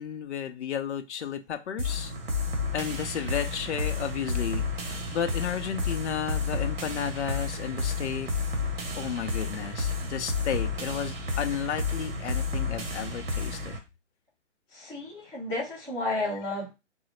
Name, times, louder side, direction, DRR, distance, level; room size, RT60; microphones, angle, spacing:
voice 1, 0.0-2.1 2.7-8.3 9.0-13.8, left 8 dB, 65° left, 7 dB, 0.6 m, -33 dB
sound 1, 1.8-13.8, left 3 dB, 50° right, 1.2 m, -31 dB
voice 2, 14.7-16.7, left 2 dB, 5° right, -14 dB, 0.8 m, -32 dB
3.7 x 2.0 x 3.1 m, 0.25 s
hypercardioid pair, 160°, 37 cm